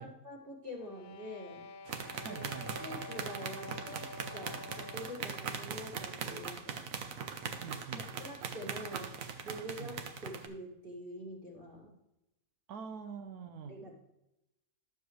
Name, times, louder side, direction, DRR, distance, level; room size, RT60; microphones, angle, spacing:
voice 1, 0.0-1.7 2.2-2.4 2.8-4.1 4.3-6.9 8.2-11.9 13.7-13.9, equal, 35° right, -2 dB, 2.2 m, -46 dB
sound 1, 0.7-5.4, left 4 dB, 70° left, 1.1 m, -48 dB
sound 2, 1.9-10.5, right 6 dB, 65° right, 1.2 m, -41 dB
voice 2, 2.2-2.7 7.6-8.0 9.8-10.0 12.7-13.8, right 6 dB, 90° right, 6 dB, 1.3 m, -44 dB
11.5 x 7.0 x 3.1 m, 0.89 s
omnidirectional pair, 1.6 m